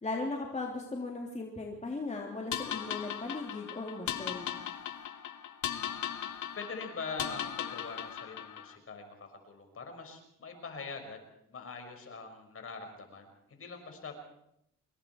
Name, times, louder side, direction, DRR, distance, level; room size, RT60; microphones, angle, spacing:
voice 1, 0.0-4.5, left 3 dB, 25° left, 0 dB, 3.3 m, -37 dB
sound 1, 2.5-8.8, left 10 dB, 75° left, 1.5 m, -38 dB
voice 2, 6.6-11.2 11.5-14.1, left 4 dB, 45° left, 5 dB, 5.8 m, -43 dB
26.0 x 21.5 x 4.7 m, 0.77 s
cardioid pair, 90°, 30 cm